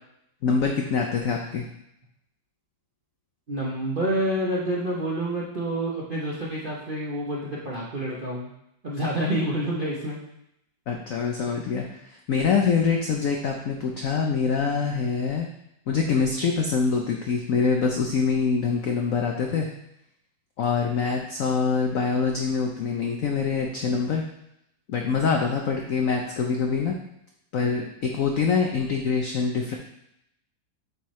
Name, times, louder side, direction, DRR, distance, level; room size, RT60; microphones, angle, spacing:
voice 1, 0.4-1.7 10.9-15.5 15.9-19.7 20.6-24.2 24.9-26.9 27.5-29.8, left 5 dB, 75° left, 2 dB, 0.7 m, -25 dB
voice 2, 3.5-8.5 8.8-10.2, right 1 dB, 55° right, -5 dB, 0.5 m, -28 dB
8.3 x 4.4 x 3.1 m, 0.81 s
omnidirectional pair, 2.1 m